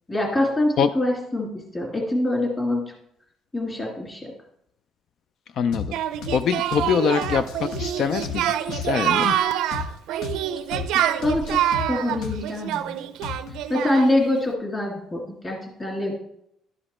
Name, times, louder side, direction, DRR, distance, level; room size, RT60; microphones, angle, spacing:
voice 1, 0.1-2.8 3.5-4.3 11.2-13.0 13.7-16.1, left 1 dB, 15° left, -1 dB, 2.5 m, -25 dB
voice 2, 5.6-5.9 6.3-9.4, left 7 dB, 50° left, 11 dB, 0.3 m, -24 dB
sound 1, 5.7-5.9 6.2-6.4 6.7-6.9 7.2-8.9 9.2-9.3 9.7-9.9 10.2-10.4 10.7-10.9 11.2-12.8 13.2-13.6, left 5 dB, 90° left, 1.1 m, -33 dB
Singing, 5.9-14.3, right 11 dB, 80° right, 0.5 m, -26 dB
11.5 x 5.0 x 4.3 m, 0.76 s
cardioid pair, 165°, 0 cm